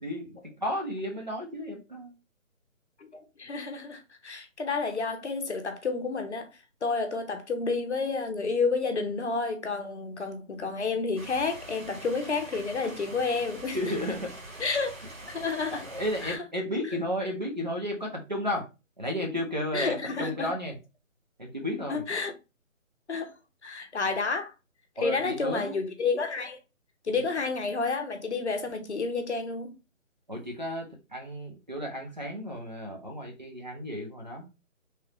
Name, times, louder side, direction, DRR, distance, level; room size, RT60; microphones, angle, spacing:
voice 1, 0.0-2.1 13.7-14.3 15.7-18.7 19.0-20.7 21.4-22.0 25.0-25.8 27.1-27.2 30.3-34.4, equal, 35° right, 0.6 m, -33 dB
voice 2, 3.0-6.5 6.8-13.8 14.6-14.9 15.3-15.8 16.2-16.4 19.7-20.5 21.8-22.3 23.1-23.3 23.6-24.5 25.0-26.6 27.0-29.7, left 4 dB, 55° left, 0.7 m, -30 dB
sound 1, 11.2-16.4, right 1 dB, 80° right, 1.9 m, -44 dB
3.1 x 2.4 x 2.9 m
figure-of-eight pair, 170°, 40 cm